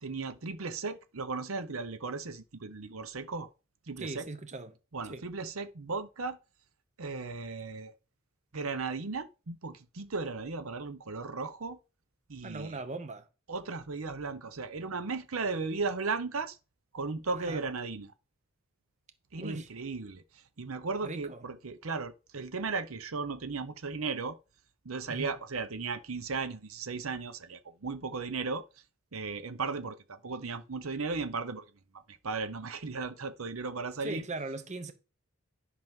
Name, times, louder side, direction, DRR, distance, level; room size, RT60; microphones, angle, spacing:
voice 1, 0.0-3.5 3.9-4.2 4.9-6.4 7.0-7.9 8.5-11.8 12.3-12.8 13.5-16.6 16.9-18.1 19.3-20.2 20.6-24.4 24.8-28.6 29.1-31.6 32.1-34.2, right 4 dB, 90° right, 0.9 m, -36 dB
voice 2, 4.0-4.8 5.1-5.2 12.4-13.3 17.3-17.6 19.4-19.7 21.0-21.5 25.1-25.3 34.0-34.9, right 2 dB, 35° right, 1.0 m, -39 dB
10.5 x 6.0 x 3.7 m
head